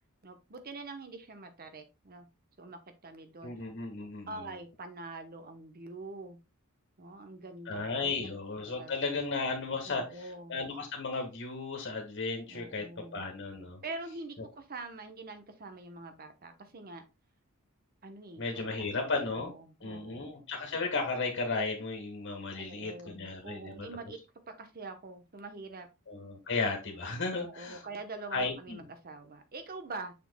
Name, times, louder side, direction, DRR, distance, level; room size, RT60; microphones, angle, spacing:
voice 1, 0.2-2.3 2.6-3.5 4.3-6.4 7.0-8.3 8.7-9.2 9.9-10.6 12.5-13.2 13.8-17.0 18.0-20.4 22.6-24.2 24.5-25.9 27.3-30.1, right 3 dB, 45° right, 8 dB, 1.1 m, -45 dB
voice 2, 3.4-4.5 7.7-12.8 13.1-13.8 18.4-19.5 19.8-23.9 26.1-27.8 28.3-28.8, left 3 dB, 55° left, 2 dB, 1.7 m, -34 dB
6.7 x 6.2 x 2.3 m, 0.26 s
head